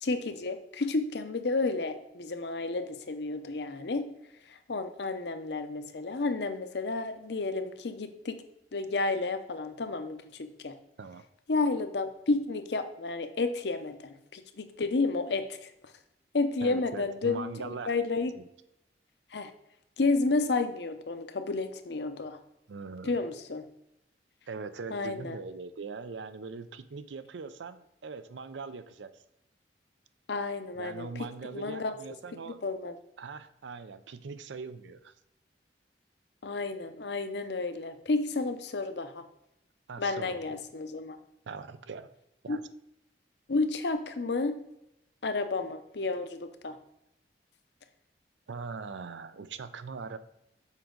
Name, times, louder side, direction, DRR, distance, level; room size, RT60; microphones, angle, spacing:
voice 1, 0.0-4.1 4.5-8.4 8.7-10.8 11.5-15.7 16.3-18.3 19.3-19.5 20.0-22.4 23.0-23.6 24.9-25.4 30.3-31.3 31.5-31.9 32.5-32.9 36.4-39.3 40.0-41.2 42.5-42.6 43.5-44.6 45.2-46.8, left 3 dB, 70° left, 9 dB, 0.7 m, -31 dB
voice 2, 16.6-17.9 18.3-18.5 22.7-23.1 24.5-29.2 30.8-32.6 33.2-35.1 39.9-40.6 41.5-42.1 42.4-42.6 48.5-50.2, right 4 dB, 90° right, 12 dB, 0.5 m, -41 dB
7.3 x 5.2 x 3.8 m, 0.83 s
head